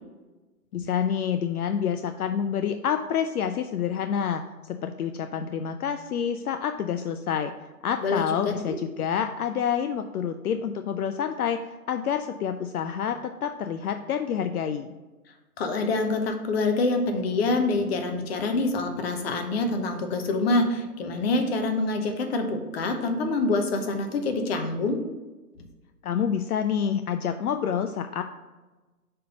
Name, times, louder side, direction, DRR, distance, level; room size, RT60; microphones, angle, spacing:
voice 1, 0.7-4.4 4.7-7.5 7.8-14.9 26.0-28.2, left 8 dB, 70° left, 8 dB, 0.5 m, -28 dB
voice 2, 8.0-8.8 15.6-25.0, left 3 dB, 40° left, 5 dB, 0.9 m, -26 dB
5.2 x 4.4 x 5.1 m, 1.2 s
hypercardioid pair, 135°, 46 cm